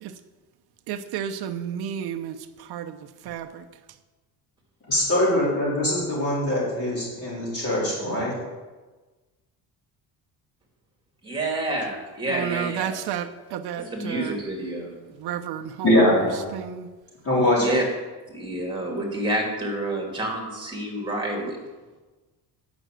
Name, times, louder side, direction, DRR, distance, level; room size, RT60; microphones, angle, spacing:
voice 1, 0.9-2.3 2.7-2.9 3.3-3.6 12.3-14.4 15.2-16.0 16.5-16.9, right 9 dB, 65° right, 0.8 m, -31 dB
voice 2, 4.9-8.3 15.8-16.5 17.2-17.8, left 1 dB, 35° left, 3.6 m, -22 dB
voice 3, 11.2-13.0 13.8-14.9 17.6-17.8 18.3-21.6, right 1 dB, 10° right, 2.7 m, -28 dB
9.2 x 6.2 x 7.6 m
cardioid pair, 150°, 41 cm